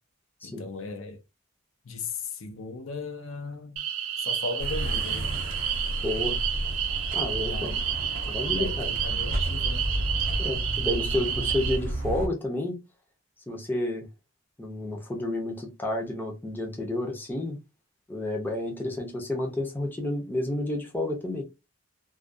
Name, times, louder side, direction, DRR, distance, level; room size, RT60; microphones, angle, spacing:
voice 1, 0.4-1.2 1.9-3.8 4.2-5.3 7.4-7.8 8.6-9.9, left 3 dB, 70° left, 0.5 m, -37 dB
sound 1, 3.8-11.8, right 9 dB, 85° right, 0.6 m, -30 dB
sound 2, 4.6-12.3, right 1 dB, 40° right, 0.6 m, -32 dB
voice 2, 6.0-6.4 7.1-7.7 8.3-8.9 10.4-12.8 13.5-14.1 14.6-17.6 18.1-21.4, left 1 dB, 10° left, 0.5 m, -30 dB
2.3 x 2.2 x 2.5 m
head